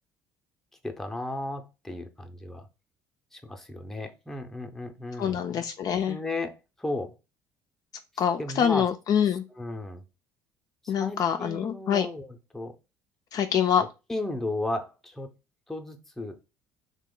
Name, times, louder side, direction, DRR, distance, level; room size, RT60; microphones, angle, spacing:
voice 1, 0.8-2.7 3.3-5.4 6.1-7.1 8.4-8.8 9.5-10.0 10.8-12.7 13.8-15.3 15.7-16.4, left 2 dB, 5° left, 0.6 m, -35 dB
voice 2, 5.2-6.2 8.2-9.4 10.9-12.1 13.3-13.8, left 8 dB, 50° left, 0.3 m, -25 dB
2.9 x 2.2 x 3.7 m
supercardioid pair, 90°, 8 cm